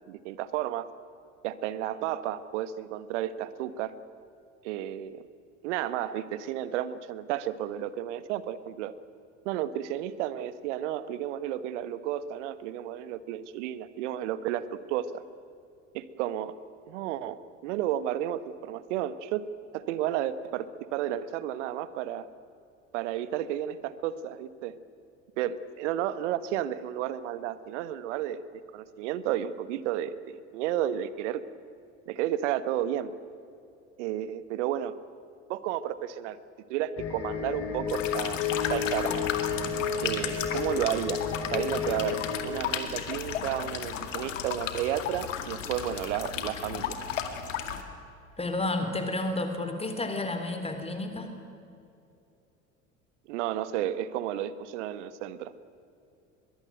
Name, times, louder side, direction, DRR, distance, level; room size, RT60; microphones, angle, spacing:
voice 1, 0.1-0.9 1.4-3.9 4.6-5.2 5.6-8.9 9.4-15.2 15.9-16.5 16.9-19.5 19.7-22.3 22.9-24.8 25.4-28.4 28.7-31.4 32.1-33.1 34.0-34.9 35.5-36.4 36.7-39.2 40.0-41.2 41.5-47.0 53.3-55.5, right 11 dB, 60° right, 15 dB, 1.3 m, -32 dB
sound 1, 37.0-42.4, left 7 dB, 35° left, 4.4 m, -32 dB
sound 2, 37.9-47.8, left 9 dB, 70° left, 2.3 m, -34 dB
voice 2, 48.4-51.3, left 2 dB, 15° left, 6 dB, 3.6 m, -31 dB
23.0 x 22.0 x 9.1 m, 2.7 s
figure-of-eight pair, 65°, 40 cm